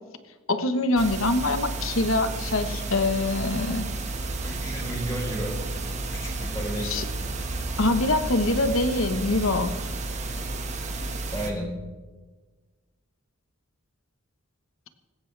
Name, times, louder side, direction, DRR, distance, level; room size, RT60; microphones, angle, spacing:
voice 1, 0.5-3.9 6.8-7.0 7.8-9.7, left 2 dB, 75° left, 9 dB, 1.3 m, -24 dB
sound 1, 1.0-11.5, right 2 dB, 35° right, 1.7 m, -32 dB
voice 2, 4.4-5.6 6.1-7.0 11.3-11.7, right 1 dB, 15° left, -1 dB, 4.1 m, -33 dB
19.0 x 16.5 x 3.4 m, 1.3 s
head